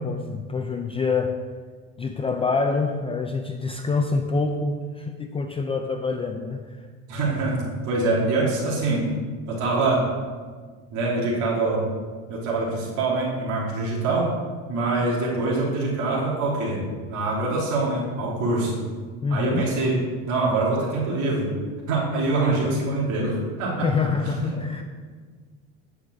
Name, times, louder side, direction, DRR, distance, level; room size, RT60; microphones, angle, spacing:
voice 1, 0.0-1.4 2.0-6.9 19.2-19.7 23.8-24.8, left 4 dB, 15° left, 5 dB, 0.5 m, -26 dB
voice 2, 7.1-9.1 9.5-10.1 10.9-11.9 12.3-14.3 14.7-18.8 19.3-19.9 20.3-21.5 21.9-23.9 24.2-24.5, right 2 dB, 60° right, -5 dB, 3.2 m, -24 dB
9.8 x 5.8 x 6.4 m, 1.5 s
cardioid pair, 125°, 34 cm